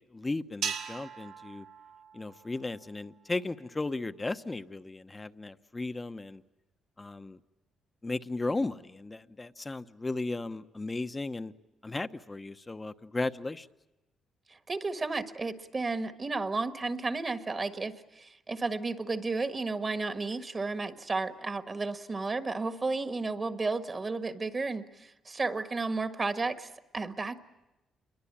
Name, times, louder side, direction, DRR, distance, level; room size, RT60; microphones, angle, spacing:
voice 1, 0.1-1.6 2.1-6.4 7.0-7.4 8.0-11.5 11.8-13.7, left 2 dB, 20° left, 11 dB, 1.0 m, -35 dB
sound 1, 0.6-3.1, right 7 dB, 85° right, 2.9 m, -39 dB
voice 2, 14.5-27.4, right 3 dB, 30° right, 8 dB, 1.6 m, -33 dB
28.0 x 22.5 x 8.7 m, 0.95 s
cardioid pair, 90°, 0 cm